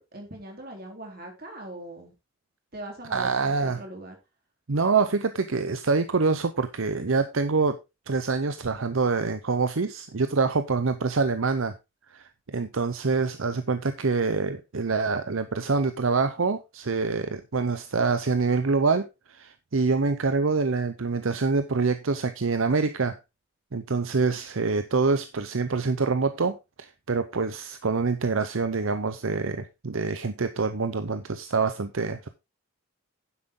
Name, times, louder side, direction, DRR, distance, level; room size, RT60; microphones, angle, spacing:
voice 1, 0.0-2.1 2.7-4.2, right 1 dB, 45° right, 3.6 m, -41 dB
voice 2, 3.1-3.8 4.7-7.8 8.1-11.7 12.1-23.2 23.7-32.3, right 4 dB, 70° right, 0.7 m, -26 dB
10.0 x 7.7 x 3.7 m
head